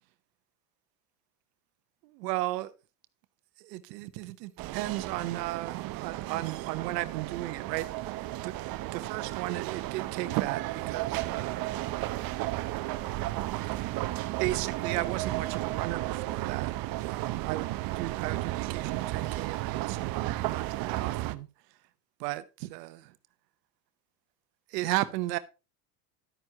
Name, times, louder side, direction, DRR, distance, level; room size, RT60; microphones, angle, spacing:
voice 1, 2.0-2.7 3.6-7.9 8.4-8.5 8.9-11.6 14.4-16.7 17.0-17.7 17.9-21.5 22.2-23.1 24.7-25.4, right 17 dB, 75° right, 0.9 m, -34 dB
sound 1, 4.6-21.4, right 16 dB, 45° right, 0.7 m, -33 dB
11.5 x 9.0 x 2.9 m
supercardioid pair, 105°, 50 cm